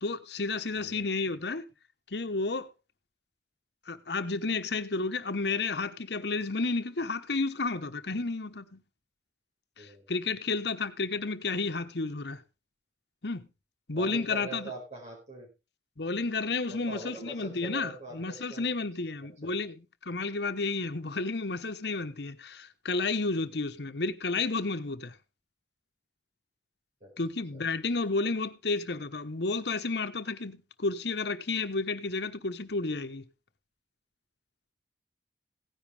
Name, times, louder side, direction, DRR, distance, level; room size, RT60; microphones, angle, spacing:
voice 1, 0.0-1.6 2.1-2.7 3.9-8.8 9.8-12.4 13.2-13.5 13.9-14.7 16.0-25.1 27.2-33.2, left 3 dB, 70° left, 1.1 m, -31 dB
voice 2, 0.8-1.3 9.8-10.1 13.9-15.5 16.7-18.7 19.4-19.5 23.5-23.6 27.0-27.1 27.5-27.7, right 2 dB, 45° right, 5.0 m, -43 dB
16.5 x 10.5 x 3.4 m
head